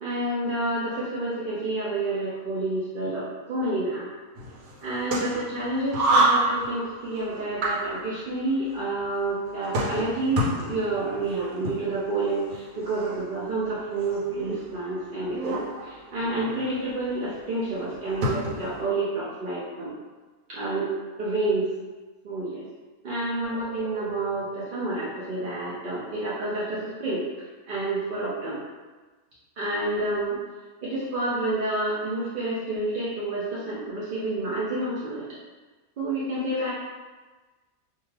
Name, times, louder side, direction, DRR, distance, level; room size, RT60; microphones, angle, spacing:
voice 1, 0.0-4.1 4.8-19.9 20.5-20.9 21.2-21.7 22.2-22.6 23.0-27.2 27.7-28.6 29.6-30.4 30.8-35.3 36.0-36.7, right 2 dB, 60° right, -8 dB, 0.5 m, -29 dB
sound 1, 4.3-18.8, right 2 dB, 85° right, 1.1 m, -30 dB
2.6 x 2.3 x 3.1 m, 1.3 s
omnidirectional pair, 1.5 m